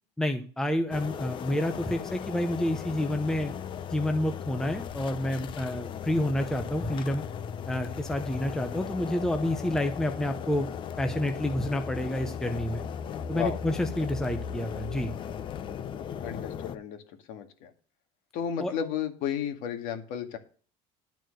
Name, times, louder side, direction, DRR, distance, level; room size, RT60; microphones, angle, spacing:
voice 1, 0.2-3.5 3.9-7.2 7.7-10.7 11.0-12.8 13.3-15.1 18.6-18.7, left 1 dB, 5° left, 7 dB, 0.8 m, -29 dB
sound 1, 0.9-16.8, left 8 dB, 35° left, 0.7 m, -37 dB
voice 2, 16.2-17.0 17.3-17.7 18.3-20.4, left 8 dB, 65° left, 7 dB, 2.0 m, -33 dB
12.5 x 4.7 x 7.8 m, 0.40 s
cardioid pair, 150°, 14 cm